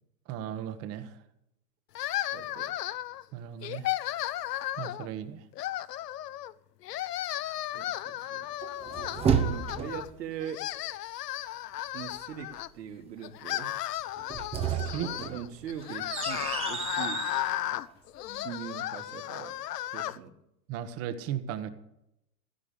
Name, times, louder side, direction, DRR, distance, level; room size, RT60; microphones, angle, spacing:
voice 1, 0.3-1.2 3.3-3.9 4.8-5.4 14.7-15.4 20.7-21.7, right 10 dB, 30° right, 11 dB, 1.3 m, -36 dB
sound 1, 1.9-3.2 3.6-5.1 5.5-6.5 6.8-10.1 10.4-12.7 13.2-20.2, left 14 dB, 70° left, 0.8 m, -34 dB
voice 2, 2.3-2.7 7.7-8.5 9.5-10.6 11.9-13.7 15.3-17.2 18.3-19.5 19.9-20.3, right 8 dB, 75° right, 5 dB, 2.7 m, -41 dB
sound 2, 8.6-10.1 14.2-17.4, right 7 dB, 10° right, 0.8 m, -31 dB
15.5 x 14.0 x 5.2 m, 0.82 s
hypercardioid pair, 145°, 49 cm